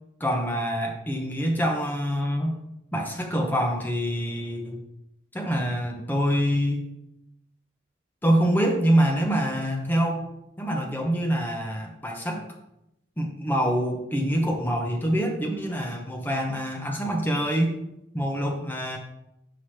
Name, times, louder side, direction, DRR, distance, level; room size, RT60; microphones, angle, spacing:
voice 1, 0.2-2.6 2.9-4.8 5.3-6.9 8.2-10.2 10.6-12.5 13.2-17.8 18.1-19.0, equal, 10° left, 1 dB, 0.8 m, -25 dB
5.8 x 5.8 x 3.2 m, 0.85 s
head